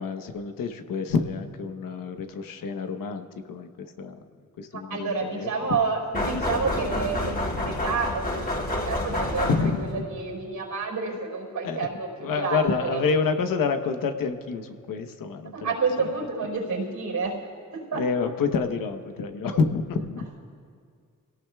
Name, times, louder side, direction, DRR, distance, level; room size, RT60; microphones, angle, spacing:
voice 1, 0.0-4.2 4.6-5.5 9.5-10.0 11.6-11.9 12.2-15.7 17.9-20.3, left 5 dB, 85° left, 7 dB, 1.1 m, -28 dB
voice 2, 4.7-13.0 15.5-17.4 17.7-18.0, right 4 dB, 75° right, -2 dB, 4.5 m, -29 dB
sound 1, 6.1-10.0, left 1 dB, 30° left, 3.5 m, -29 dB
28.0 x 17.5 x 2.3 m, 2.2 s
cardioid pair, 55°, 32 cm